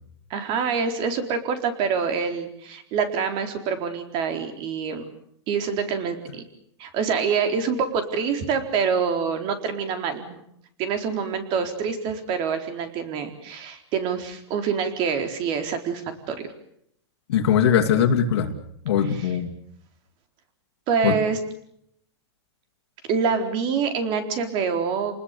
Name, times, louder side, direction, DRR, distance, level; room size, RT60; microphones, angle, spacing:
voice 1, 0.3-5.0 5.5-6.4 6.8-10.4 10.8-16.0 16.3-16.4 19.0-19.3 20.9-21.4 23.1-25.2, right 6 dB, 35° right, 7 dB, 4.2 m, -26 dB
voice 2, 17.3-18.5 18.8-19.5 21.0-21.2, left 8 dB, 70° left, 3 dB, 2.8 m, -20 dB
29.5 x 20.0 x 6.9 m, 0.72 s
supercardioid pair, 150°, 14 cm